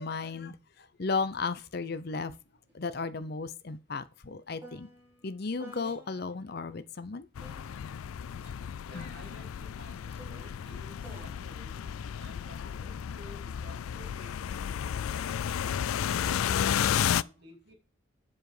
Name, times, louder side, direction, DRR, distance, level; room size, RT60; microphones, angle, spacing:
voice 1, 0.0-2.4 2.7-4.9 5.2-7.3 7.5-7.7 8.9-9.1, left 4 dB, 50° left, 0.6 m, -35 dB
sound 1, 1.2-1.4 1.7-6.5 7.4-12.9 13.8-14.2, right 1 dB, 10° right, 3.5 m, -54 dB
sound 2, 7.4-17.2, left 9 dB, 85° left, 0.4 m, -32 dB
voice 2, 8.9-15.5 16.0-17.7, equal, 55° right, 2.9 m, -53 dB
7.8 x 7.2 x 4.9 m
head